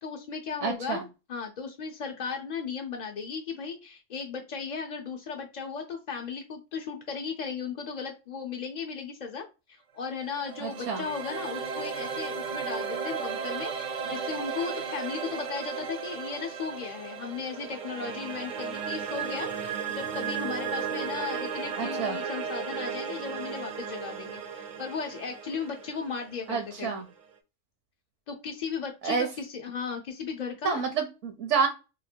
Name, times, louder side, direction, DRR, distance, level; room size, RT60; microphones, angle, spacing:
voice 1, 0.0-9.5 9.9-26.9 28.3-30.8, left 5 dB, 55° left, 1 dB, 0.5 m, -36 dB
voice 2, 0.6-1.0 10.6-11.0 21.8-22.2 26.5-27.1 29.0-29.3 30.6-31.7, right 6 dB, 75° right, 4 dB, 1.0 m, -28 dB
sound 1, 10.1-27.2, right 6 dB, 50° right, 0.6 m, -35 dB
2.9 x 2.4 x 4.3 m, 0.29 s
omnidirectional pair, 1.3 m